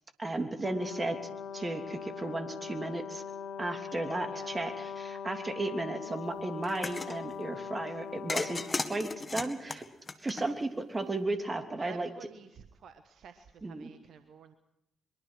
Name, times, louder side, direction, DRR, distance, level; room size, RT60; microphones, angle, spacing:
voice 1, 0.2-3.2 3.6-9.9 10.2-12.1 13.6-13.9, right 2 dB, 25° right, 6 dB, 3.0 m, -35 dB
Brass instrument, 0.6-9.3, left 6 dB, 65° left, 2.3 m, -41 dB
sound 1, 6.6-7.2 8.3-10.8, left 3 dB, 30° left, 1.9 m, -35 dB
voice 2, 11.8-14.5, right 6 dB, 60° right, 9 dB, 1.3 m, -51 dB
23.0 x 22.0 x 6.3 m, 0.83 s
figure-of-eight pair, 40°, 0 cm